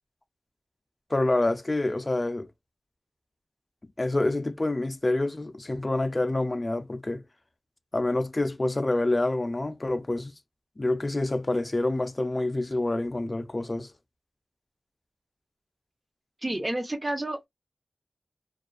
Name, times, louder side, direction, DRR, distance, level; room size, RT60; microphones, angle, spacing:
voice 1, 1.1-2.5 4.0-7.2 7.9-10.3 10.8-13.9, left 2 dB, 30° left, 0.4 m, -27 dB
voice 2, 16.4-17.5, right 1 dB, 25° right, 0.6 m, -30 dB
2.4 x 2.3 x 2.3 m
wide cardioid pair, 80°, 0 cm